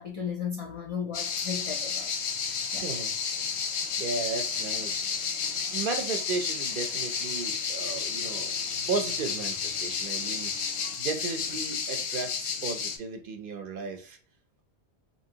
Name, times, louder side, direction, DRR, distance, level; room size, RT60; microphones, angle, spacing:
voice 1, 0.0-2.1 2.7-2.8, left 7 dB, 55° left, 0.4 m, -35 dB
sound 1, 1.1-13.0, left 6 dB, 90° left, 0.9 m, -31 dB
voice 2, 2.8-3.1 3.8-5.0 5.7-8.5 8.9-10.7 11.0-14.2, right 4 dB, 60° right, 0.6 m, -34 dB
2.9 x 2.7 x 2.7 m
omnidirectional pair, 1.1 m